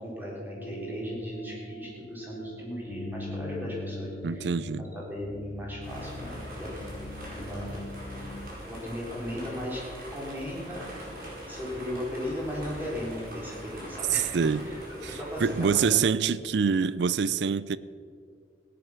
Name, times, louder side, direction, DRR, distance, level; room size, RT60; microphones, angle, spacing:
voice 1, 0.0-4.5 4.8-6.7 7.3-7.6 8.6-9.8 10.1-10.9 11.5-14.8 15.1-16.0, left 1 dB, 10° right, 3.7 m, -37 dB
sound 1, 0.5-8.5, left 1 dB, 80° left, 1.0 m, -41 dB
voice 2, 4.2-4.9 14.1-14.7 15.0-15.1 15.4-17.8, right 6 dB, 75° right, 0.4 m, -25 dB
sound 2, 5.8-15.7, equal, 50° right, 4.6 m, -42 dB
17.0 x 10.5 x 6.0 m
head